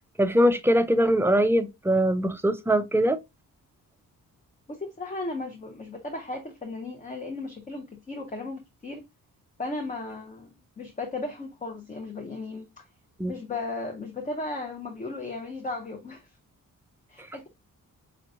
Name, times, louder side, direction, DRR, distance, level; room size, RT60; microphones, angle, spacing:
voice 1, 0.2-3.2 13.2-13.3, equal, 10° right, 0.3 m, -22 dB
voice 2, 4.7-9.0 9.6-10.5 10.8-12.8 13.3-16.3 17.1-17.5, left 2 dB, 25° left, 0.6 m, -35 dB
5.1 x 2.9 x 2.5 m
wide cardioid pair, 160°, 34 cm